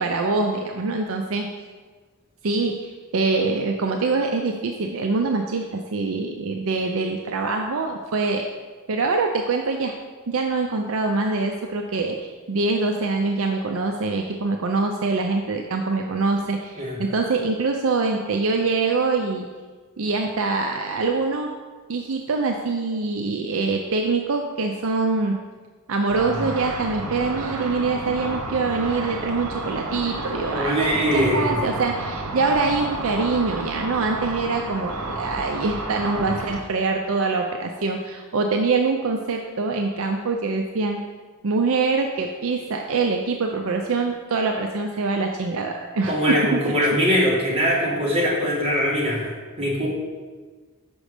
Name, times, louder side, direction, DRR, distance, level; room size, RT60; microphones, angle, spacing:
voice 1, 0.0-1.5 2.4-8.5 8.9-9.9 10.3-19.5 20.0-21.5 21.9-25.4 25.9-41.0 41.4-46.6, right 3 dB, 65° right, 3 dB, 0.5 m, -24 dB
Car / Traffic noise roadway noise / Engine, 26.1-36.6, right 2 dB, 90° right, 1.0 m, -31 dB
voice 2, 30.5-31.6 46.1-49.3 49.6-49.9, equal, 25° right, -6 dB, 2.2 m, -22 dB
6.3 x 5.2 x 5.0 m, 1.4 s
head